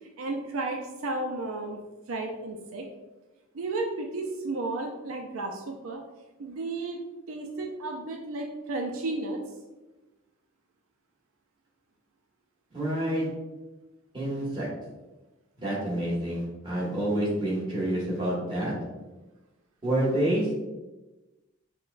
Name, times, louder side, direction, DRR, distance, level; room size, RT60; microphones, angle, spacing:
voice 1, 0.2-1.8 2.1-2.9 3.5-6.0 6.4-7.0 7.3-9.4, right 2 dB, 85° right, 2 dB, 0.4 m, -33 dB
voice 2, 12.7-13.3 14.1-14.7 15.6-18.7 19.8-20.5, right 1 dB, 25° right, -7 dB, 1.4 m, -28 dB
5.7 x 2.2 x 2.5 m, 1.1 s
head